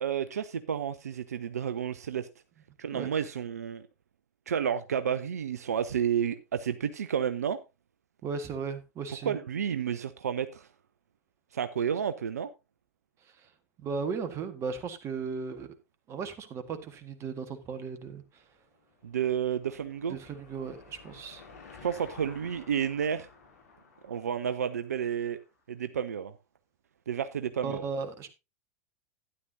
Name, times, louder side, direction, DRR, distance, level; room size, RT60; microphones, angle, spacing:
voice 1, 0.0-2.3 2.8-3.8 4.5-7.6 9.3-10.7 11.5-12.5 19.0-20.2 21.8-23.3 24.0-25.4 25.7-26.3 27.1-27.8, right 8 dB, 75° right, 0.6 m, -31 dB
voice 2, 8.2-9.3 13.8-15.7 16.1-18.2 20.1-21.4 27.6-28.3, right 5 dB, 35° right, 1.6 m, -36 dB
Car passing by / Engine, 18.6-25.4, left 5 dB, 70° left, 3.0 m, -53 dB
12.5 x 9.8 x 2.7 m
figure-of-eight pair, 90°, 9 cm